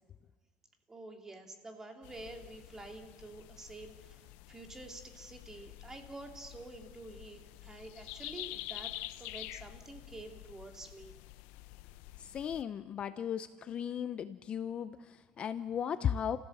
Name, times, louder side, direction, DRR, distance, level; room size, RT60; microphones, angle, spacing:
voice 1, 0.9-8.9 9.2-11.1, right 2 dB, 15° right, 3 dB, 2.3 m, -48 dB
sound 1, 2.0-12.6, left 17 dB, 80° left, 0.6 m, -48 dB
voice 2, 12.2-16.4, left 8 dB, 35° left, 12 dB, 0.6 m, -36 dB
30.0 x 15.5 x 7.8 m, 1.4 s
cardioid pair, 145°, 3 cm